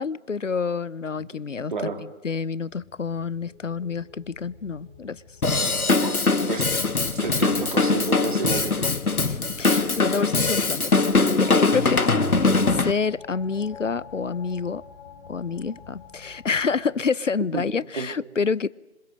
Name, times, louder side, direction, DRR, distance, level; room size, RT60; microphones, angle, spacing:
voice 1, 0.0-1.7 2.2-5.2 9.3-11.1 11.3-14.8 15.3-18.7, left 5 dB, 60° left, 21 dB, 0.8 m, -28 dB
voice 2, 1.7-2.0 6.0-6.7 7.1-8.9 17.5-17.6 18.0-18.1, right 5 dB, 35° right, 5 dB, 3.0 m, -31 dB
sound 1, 2.7-16.8, left 5 dB, 5° left, 1.1 m, -49 dB
Drum kit / Drum, 5.4-12.9, left 3 dB, 80° left, 1.5 m, -22 dB
27.0 x 26.0 x 6.5 m, 0.94 s
figure-of-eight pair, 155°, 43 cm